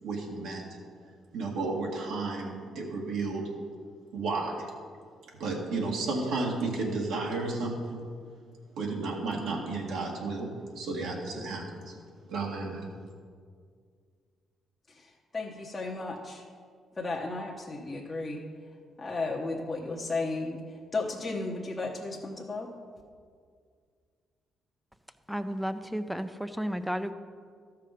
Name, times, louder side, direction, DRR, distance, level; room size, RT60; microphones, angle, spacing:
voice 1, 0.0-0.7 1.3-3.5 4.1-4.7 5.4-8.1 8.8-12.0 12.3-12.9, right 3 dB, 85° right, -1 dB, 1.8 m, -32 dB
voice 2, 14.9-16.4 17.0-18.4 19.0-20.6 20.9-22.7, left 3 dB, 25° left, -2 dB, 1.0 m, -34 dB
voice 3, 25.3-27.1, equal, ahead, 10 dB, 0.5 m, -33 dB
13.5 x 5.8 x 5.0 m, 2.1 s
cardioid pair, 90°, 0 cm